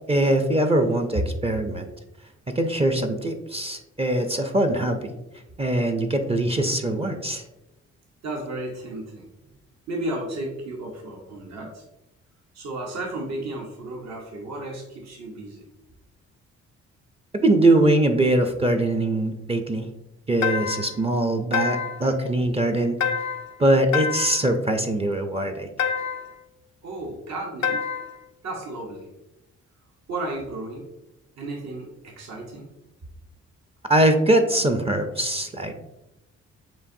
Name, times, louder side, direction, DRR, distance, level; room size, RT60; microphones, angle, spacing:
voice 1, 0.1-1.9 2.6-5.1 5.6-7.4 17.4-19.9 20.3-23.0 23.6-25.9 33.9-35.8, right 1 dB, 20° right, 6 dB, 0.5 m, -22 dB
voice 2, 8.2-9.2 9.9-11.8 12.5-15.6 26.8-27.9 28.4-29.1 30.1-30.9 31.4-32.7, right 2 dB, 60° right, 0 dB, 1.0 m, -33 dB
sound 1, 20.4-21.0 21.5-22.1 23.0-23.5 23.9-24.5 25.8-26.3 27.6-28.2, left 7 dB, 70° left, 0.5 m, -27 dB
7.2 x 2.6 x 2.6 m, 0.92 s
supercardioid pair, 60°, 30 cm